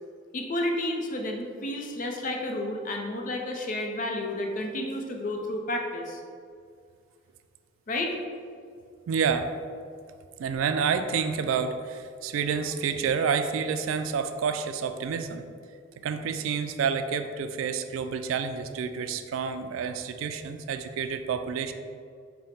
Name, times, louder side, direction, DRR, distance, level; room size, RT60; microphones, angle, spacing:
voice 1, 0.3-6.2 7.9-8.2, left 1 dB, 40° left, 2 dB, 0.5 m, -31 dB
voice 2, 9.1-9.5 10.4-15.4 16.0-21.7, right 6 dB, 85° right, 8 dB, 0.3 m, -29 dB
5.0 x 2.1 x 4.2 m, 2.2 s
head